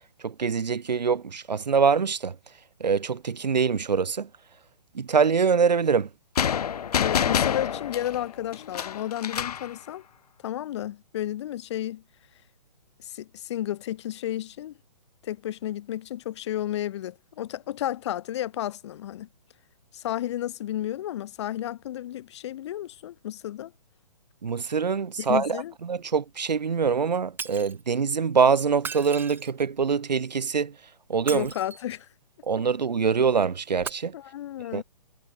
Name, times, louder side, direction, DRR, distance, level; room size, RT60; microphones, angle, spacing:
voice 1, 0.2-2.4 2.8-4.3 4.9-6.1 24.4-30.7 31.1-31.5 32.5-34.1 34.7-34.8, right 6 dB, 90° right, 0.5 m, -24 dB
sound 1, 6.4-9.7, left 8 dB, 65° left, 0.6 m, -27 dB
voice 2, 6.9-10.0 10.4-12.0 13.0-14.7 15.2-19.3 19.9-23.7 25.2-25.7 31.3-32.1 34.1-34.8, left 12 dB, 45° left, 1.2 m, -32 dB
Shatter, 27.4-27.8 28.7-29.8 31.1-32.1 33.8-33.9, right 6 dB, 10° right, 4.0 m, -37 dB
figure-of-eight pair, 135°, 21 cm